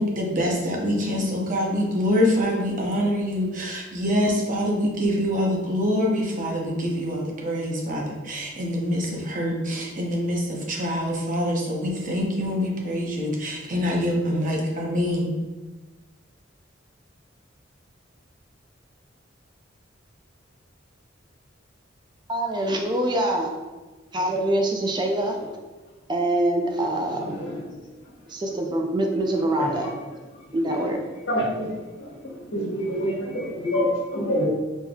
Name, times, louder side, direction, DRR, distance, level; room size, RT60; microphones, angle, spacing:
voice 1, 0.0-15.3, equal, 45° right, -1 dB, 0.7 m, -25 dB
voice 2, 22.3-23.5 24.1-25.4 26.1-27.2 28.3-29.9 30.5-31.0, right 1 dB, 25° right, 3 dB, 0.4 m, -24 dB
voice 3, 31.3-31.7 32.5-34.5, equal, 90° left, -5 dB, 1.4 m, -25 dB
4.3 x 3.3 x 2.3 m, 1.3 s
head